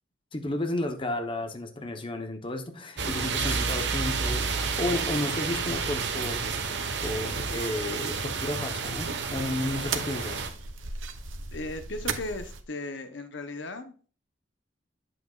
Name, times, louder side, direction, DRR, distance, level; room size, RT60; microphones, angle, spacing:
voice 1, 0.3-6.5 7.0-10.4, left 1 dB, 25° left, 5 dB, 1.0 m, -32 dB
sound 1, 3.0-10.5, right 4 dB, 65° right, 1.2 m, -30 dB
sound 2, 6.5-12.6, right 5 dB, 90° right, 1.0 m, -39 dB
voice 2, 11.5-14.1, left 2 dB, 65° left, 9 dB, 0.9 m, -37 dB
8.7 x 7.8 x 2.4 m, 0.39 s
head